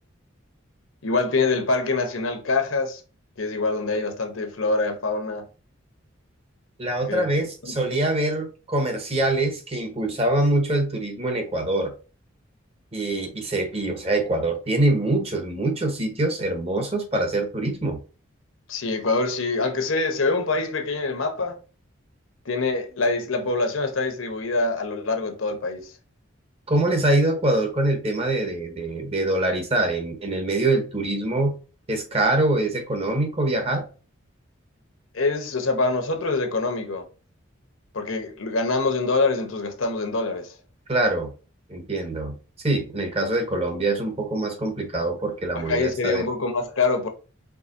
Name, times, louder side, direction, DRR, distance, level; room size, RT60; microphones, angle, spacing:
voice 1, 1.0-3.0 3.4-5.4 7.1-7.3 7.6-7.9 18.7-21.6 22.5-25.9 35.1-37.0 37.9-40.5 45.5-47.1, left 3 dB, 80° left, 0.9 m, -25 dB
voice 2, 6.8-11.9 12.9-18.0 26.7-31.5 31.9-33.8 40.9-41.3 41.7-42.3 42.6-46.3, right 2 dB, 30° right, 0.9 m, -24 dB
4.7 x 3.3 x 2.6 m
head